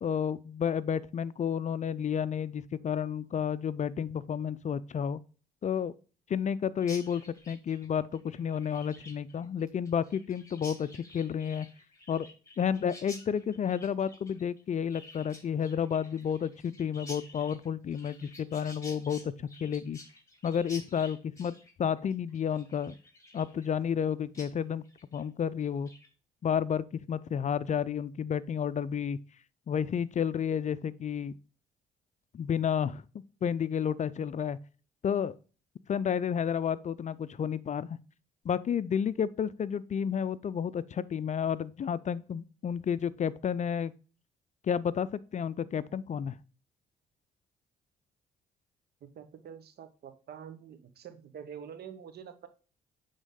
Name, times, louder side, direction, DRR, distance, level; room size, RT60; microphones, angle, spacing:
voice 1, 0.0-5.2 5.6-5.9 6.3-11.7 12.1-12.3 12.6-20.0 20.4-21.5 21.8-23.0 23.3-24.8 25.1-25.9 26.4-29.2 29.7-31.3 32.3-33.0 33.4-34.6 35.0-35.3 35.9-38.0 38.4-43.9 44.6-46.4, left 8 dB, 40° left, 0.4 m, -31 dB
Chirp tweet, 6.8-24.1 24.3-24.5 24.8-25.2 25.6-26.1, left 2 dB, 15° left, 2.5 m, -51 dB
voice 2, 49.1-52.5, right 8 dB, 60° right, 1.1 m, -46 dB
9.1 x 3.6 x 3.7 m
hypercardioid pair, 50°, 19 cm